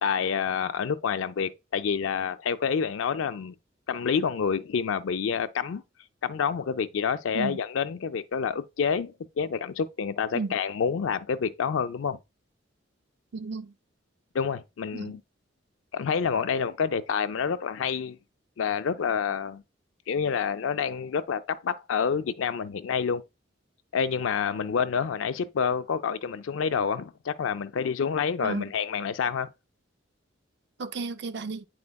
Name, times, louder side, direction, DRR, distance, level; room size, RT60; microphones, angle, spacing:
voice 1, 0.0-3.5 3.9-5.8 6.2-12.2 14.3-15.2 15.9-18.2 18.6-19.6 20.1-23.2 23.9-29.5, left 6 dB, 80° left, 0.4 m, -28 dB
voice 2, 13.3-13.7 14.9-15.1 28.4-28.7 30.8-31.7, right 4 dB, 55° right, 0.4 m, -33 dB
9.6 x 4.3 x 2.2 m
head